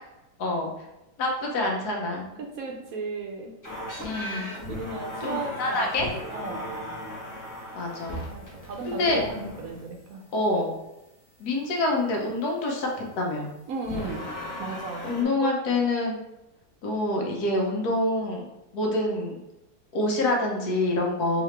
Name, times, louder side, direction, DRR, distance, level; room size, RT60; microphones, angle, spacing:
voice 1, 1.2-2.2 4.0-4.5 5.2-6.1 7.8-8.2 8.8-9.2 10.3-10.7 11.4-12.9 13.2-13.5 15.0-16.2 16.8-18.5 18.7-19.3 19.9-21.4, left 2 dB, 75° left, 0 dB, 1.3 m, -26 dB
voice 2, 2.4-3.5 4.6-6.7 8.3-10.2 13.7-14.3 14.6-15.8 21.3-21.4, right 3 dB, 65° right, 1 dB, 1.0 m, -35 dB
sound 1, 3.6-10.0 13.8-15.2, equal, 20° left, 0.5 m, -37 dB
4.0 x 2.8 x 3.1 m, 0.97 s
omnidirectional pair, 1.7 m